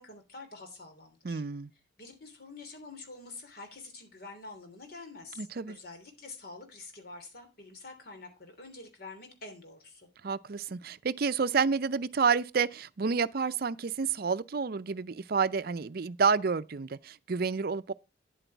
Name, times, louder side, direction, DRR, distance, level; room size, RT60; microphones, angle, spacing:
voice 1, 0.0-1.4 2.0-10.1, left 3 dB, 55° left, 3.1 m, -47 dB
voice 2, 1.2-1.7 5.4-5.8 10.2-17.9, right 5 dB, 55° right, 0.5 m, -29 dB
10.0 x 8.0 x 4.5 m
head